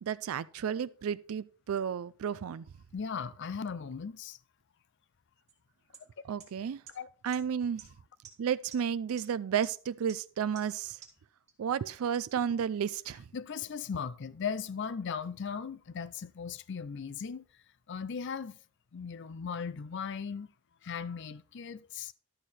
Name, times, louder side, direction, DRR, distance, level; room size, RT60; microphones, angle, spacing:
voice 1, 0.0-2.6 6.3-6.8 7.2-7.8 8.4-11.0 11.6-13.2, right 8 dB, 75° right, 0.4 m, -32 dB
voice 2, 2.9-4.4 6.9-7.1 13.3-17.4 17.9-18.6 18.9-20.5 20.8-22.1, left 6 dB, 55° left, 0.5 m, -37 dB
sound 1, 5.5-5.6 5.9-6.0 6.4-6.5 6.9-7.0 7.3-7.4 7.8-7.9 8.2-8.3 8.7-8.8 9.2-9.3 9.6-9.7 10.1-10.2 10.5-10.6 11.0-11.1 11.5-11.6 11.9-12.0 12.4-12.5, right 8 dB, 30° right, 2.0 m, -48 dB
11.5 x 6.5 x 4.2 m
head